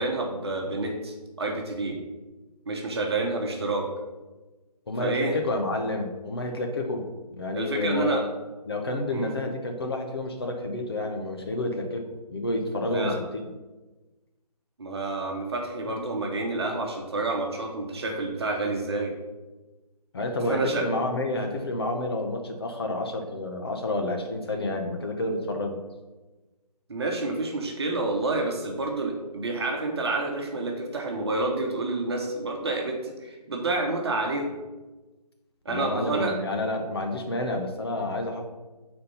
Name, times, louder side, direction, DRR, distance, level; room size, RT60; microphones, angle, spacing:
voice 1, 0.0-2.0 2.7-3.9 5.0-5.4 7.5-8.2 9.1-9.3 12.9-13.1 14.8-19.1 20.5-20.9 26.9-34.6 35.6-36.3, right 2 dB, 40° right, 2 dB, 1.2 m, -29 dB
voice 2, 4.9-8.2 8.7-12.0 12.3-13.2 20.1-25.8 35.7-38.4, left 2 dB, 35° left, 3 dB, 0.9 m, -29 dB
6.3 x 4.4 x 5.5 m, 1.2 s
figure-of-eight pair, 155°, 21 cm